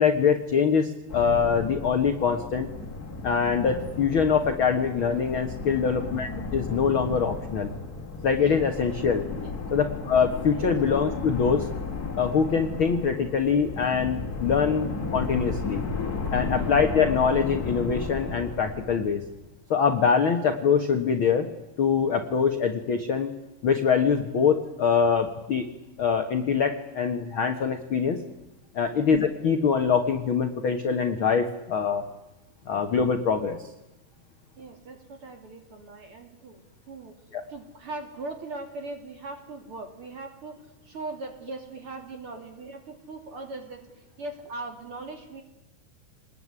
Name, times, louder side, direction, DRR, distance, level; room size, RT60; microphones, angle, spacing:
voice 1, 0.0-2.7 3.2-7.7 8.2-9.3 9.7-11.7 12.1-15.8 16.3-19.2 19.7-21.5 21.8-23.3 23.6-25.7 26.0-28.2 28.7-32.0 32.6-33.6 37.3-37.4, left 6 dB, 65° left, 6 dB, 1.3 m, -24 dB
sound 1, 1.1-19.5, left 4 dB, 25° left, 2.5 m, -34 dB
voice 2, 34.6-37.2 37.5-40.6 40.8-43.8 44.2-45.4, right 2 dB, 35° right, 5 dB, 3.4 m, -40 dB
27.0 x 20.5 x 9.7 m, 0.99 s
omnidirectional pair, 4.5 m